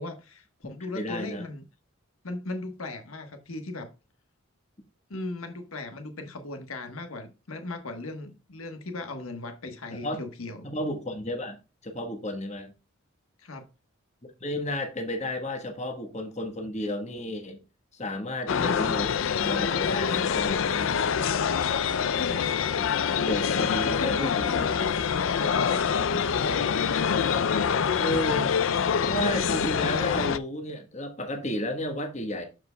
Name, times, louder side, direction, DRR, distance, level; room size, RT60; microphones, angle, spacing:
voice 1, 0.0-1.6 2.2-3.9 5.1-10.7 13.4-13.7 22.0-22.6 22.9-23.2 23.6-24.9 25.2-26.8 27.2-27.9, left 2 dB, 85° left, 1.2 m, -38 dB
voice 2, 0.9-1.4 9.9-10.2 10.6-11.6 11.8-12.7 14.4-17.6 17.9-21.0 22.8-22.9 23.2-24.5 28.0-28.5 29.0-32.4, left 1 dB, 30° left, 1.2 m, -32 dB
sound 1, 18.5-30.4, left 7 dB, 70° left, 0.4 m, -25 dB
12.0 x 4.7 x 2.2 m
head